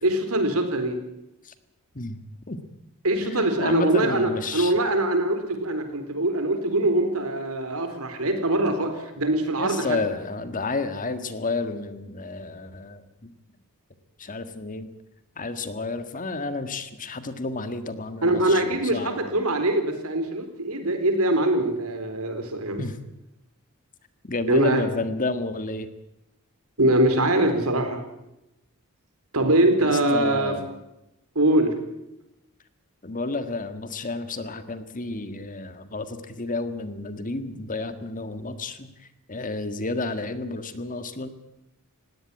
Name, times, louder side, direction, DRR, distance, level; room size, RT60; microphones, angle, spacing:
voice 1, 0.0-1.0 3.0-10.0 18.2-22.9 24.5-24.8 26.8-28.0 29.3-30.5 31.3-31.7, right 1 dB, 75° right, 7 dB, 4.1 m, -23 dB
voice 2, 3.2-4.8 9.6-13.3 14.2-14.9 15.4-19.2 22.8-23.0 24.2-25.9 29.8-30.7 33.0-38.9 39.3-41.3, left 3 dB, 35° left, 11 dB, 1.7 m, -31 dB
19.5 x 17.0 x 9.8 m, 0.89 s
head